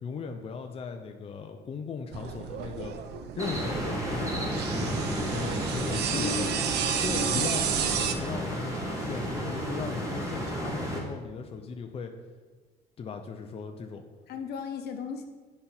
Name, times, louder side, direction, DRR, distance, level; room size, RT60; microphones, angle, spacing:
voice 1, 0.0-3.0 3.4-6.4 7.0-12.1 13.0-14.0, left 5 dB, 35° left, 4 dB, 0.6 m, -38 dB
sound 1, 2.1-8.1, right 8 dB, 75° right, 0.7 m, -32 dB
sound 2, 3.4-11.0, right 1 dB, 20° right, 2.0 m, -32 dB
voice 2, 6.1-6.7 7.0-7.7 14.3-15.2, left 6 dB, 70° left, 5 dB, 1.0 m, -36 dB
8.7 x 5.5 x 4.4 m, 1.4 s
cardioid pair, 110°, 17 cm